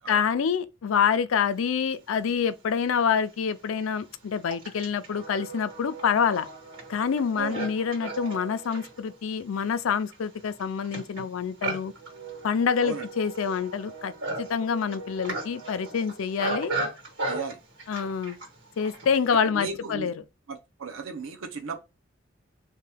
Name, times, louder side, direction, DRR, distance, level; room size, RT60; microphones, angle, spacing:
voice 1, 0.1-6.5 6.9-11.9 12.4-14.1 14.4-16.7 17.9-18.4 18.8-20.1, left 6 dB, 85° left, 0.4 m, -26 dB
Livestock farm animals working animals, 2.5-2.6 3.3-19.3, right 2 dB, 70° right, 1.7 m, -37 dB
voice 2, 17.2-17.6 19.4-20.1 20.5-21.8, right 4 dB, 85° right, 0.6 m, -36 dB
2.9 x 2.2 x 3.2 m
head